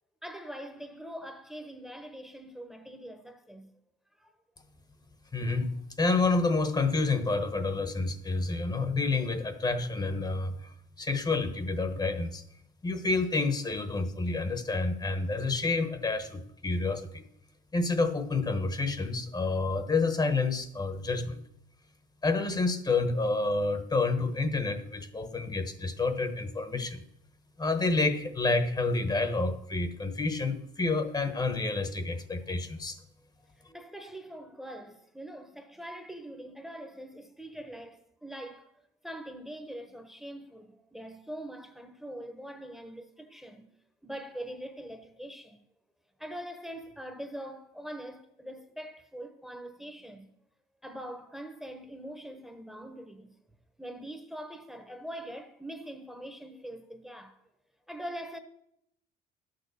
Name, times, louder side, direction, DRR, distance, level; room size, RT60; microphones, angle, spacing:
voice 1, 0.2-3.7 4.2-4.3 33.5-38.7 39.0-43.7 44.0-45.6 46.2-50.3 50.8-53.3 53.8-57.4 57.9-58.4, right 1 dB, ahead, 1.1 m, -43 dB
voice 2, 5.3-10.6 11.0-12.4 12.8-17.2 17.7-21.4 22.2-27.0 27.6-33.0, left 3 dB, 25° left, 1.1 m, -29 dB
11.5 x 6.8 x 6.9 m
cardioid pair, 110°, 17 cm